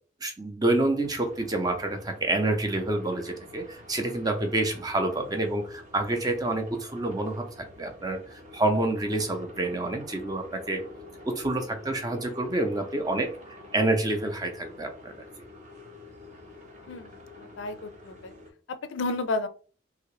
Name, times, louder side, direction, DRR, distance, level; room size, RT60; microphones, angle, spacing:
voice 1, 0.2-10.8 11.2-13.3 13.7-15.3, right 2 dB, 20° right, 5 dB, 0.5 m, -28 dB
sound 1, 1.0-18.5, left 2 dB, 40° right, 0.8 m, -48 dB
voice 2, 16.9-18.3 18.7-19.5, left 2 dB, 75° left, 11 dB, 0.4 m, -32 dB
2.8 x 2.8 x 3.1 m, 0.38 s
head